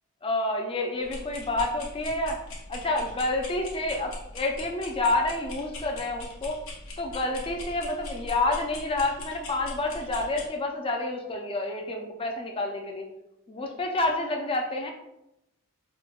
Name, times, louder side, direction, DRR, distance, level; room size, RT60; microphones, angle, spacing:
voice 1, 0.2-2.4 2.7-6.6 7.0-13.1 13.5-14.9, left 2 dB, 25° left, 2 dB, 0.4 m, -29 dB
sound 1, 1.0-10.5, left 2 dB, 65° left, 0.7 m, -41 dB
5.0 x 2.2 x 2.3 m, 0.88 s
head